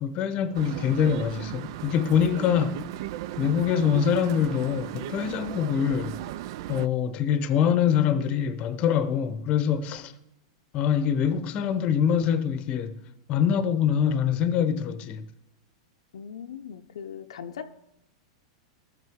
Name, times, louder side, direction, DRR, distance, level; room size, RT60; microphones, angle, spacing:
voice 1, 0.0-2.8 3.4-6.2 6.7-10.1 10.7-13.0 13.3-15.3, left 8 dB, 40° left, 0.8 m, -24 dB
sound 1, 0.5-6.9, right 14 dB, 60° right, 0.3 m, -36 dB
voice 2, 16.1-17.7, left 7 dB, 85° left, 0.6 m, -39 dB
14.0 x 6.6 x 3.6 m
hypercardioid pair, 125°, 3 cm